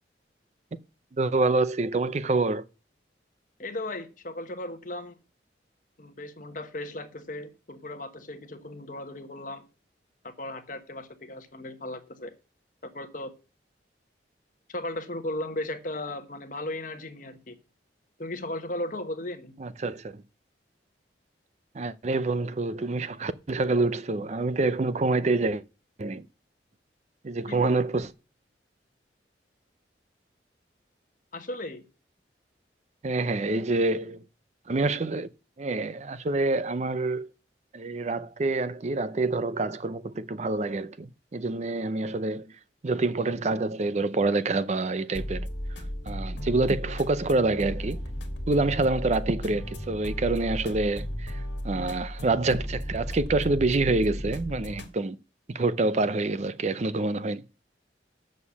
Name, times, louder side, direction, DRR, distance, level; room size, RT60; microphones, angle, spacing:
voice 1, 1.1-2.6 19.6-20.2 21.7-25.6 26.0-26.2 27.2-28.1 33.0-34.2 34.7-35.3 35.6-37.3 37.7-42.5 42.8-45.5 46.1-48.0 48.5-55.2 55.5-57.4, right 3 dB, 40° right, 0.5 m, -27 dB
voice 2, 3.6-5.1 6.0-9.6 10.2-12.3 12.8-13.3 14.7-17.5 18.2-19.5 27.5-27.8 31.3-31.8, left 1 dB, 45° left, 1.1 m, -36 dB
sound 1, 45.1-54.9, equal, 85° left, 1.6 m, -35 dB
7.2 x 6.5 x 7.1 m
head